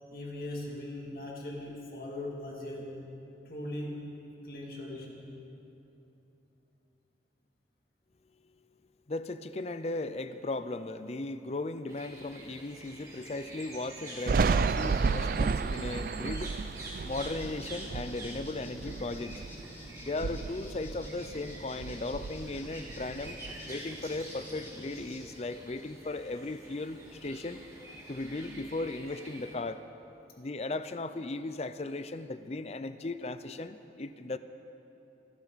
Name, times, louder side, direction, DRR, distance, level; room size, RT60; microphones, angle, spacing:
voice 1, 0.1-3.0 3.4-4.0 4.4-5.2, left 1 dB, 55° left, -2 dB, 2.7 m, -39 dB
voice 2, 9.1-16.5 17.0-19.4 20.0-23.4 23.7-27.6 28.1-29.9 30.4-34.4, left 2 dB, 35° left, 12 dB, 0.5 m, -37 dB
sound 1, 11.9-29.6, right 1 dB, 20° right, 2.3 m, -48 dB
Thunder, 14.3-19.7 20.1-21.5 21.8-23.5, right 5 dB, 50° right, 0.3 m, -32 dB
sound 2, 17.0-25.2, equal, 15° left, 3.7 m, -48 dB
27.0 x 13.0 x 4.1 m, 2.9 s
head